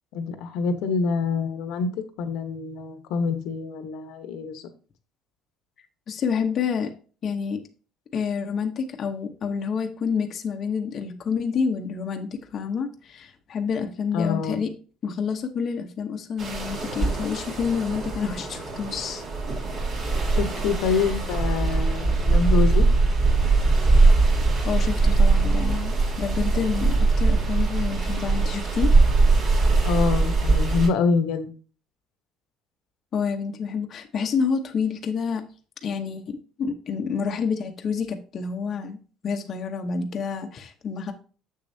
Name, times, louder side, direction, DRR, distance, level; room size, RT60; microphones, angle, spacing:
voice 1, 0.1-1.9 2.2-4.6 14.1-14.6 20.4-22.9 29.8-31.5, left 5 dB, 75° left, 9 dB, 1.1 m, -26 dB
voice 2, 6.1-6.9 7.2-7.6 8.1-14.7 15.0-19.2 20.8-21.1 24.6-29.0 33.1-35.4 35.8-39.0 39.2-41.1, left 6 dB, 40° left, 4 dB, 0.9 m, -28 dB
sound 1, 16.4-30.9, right 3 dB, 40° right, 2.9 m, -21 dB
7.2 x 6.7 x 2.7 m, 0.38 s
cardioid pair, 135°, 0 cm